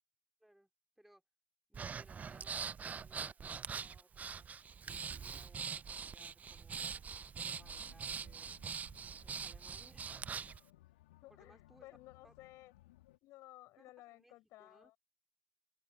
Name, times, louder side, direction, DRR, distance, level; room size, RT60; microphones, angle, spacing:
voice 1, 0.4-0.7 1.0-1.2 1.7-2.6 3.0-4.5 5.1-7.0 7.3-8.5 9.0-10.0 11.3-11.9 12.2-12.3 13.8-14.3 14.6-14.9, right 1 dB, 5° right, 4.9 m, -66 dB
Breathing, 1.7-10.6, right 6 dB, 25° right, 0.8 m, -43 dB
sound 1, 7.5-13.2, left 17 dB, 70° left, 3.6 m, -64 dB
voice 2, 11.2-12.7 13.2-15.0, left 18 dB, 50° left, 7.5 m, -57 dB
open air
figure-of-eight pair, 70°, 6 cm